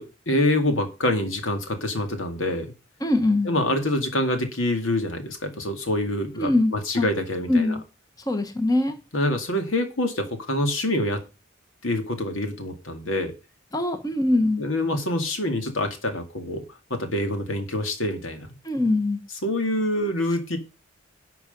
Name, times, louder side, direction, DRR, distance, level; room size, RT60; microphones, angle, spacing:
voice 1, 0.0-2.7 3.4-7.8 9.1-11.2 11.8-13.3 14.6-16.6 16.9-18.6 19.4-20.6, left 1 dB, 75° left, 6 dB, 2.2 m, -26 dB
voice 2, 3.0-3.5 6.4-7.1 7.5-7.8 8.2-9.0 13.7-14.7 18.6-19.2, left 2 dB, 20° left, 7 dB, 1.2 m, -22 dB
11.5 x 6.1 x 5.4 m, 0.29 s
head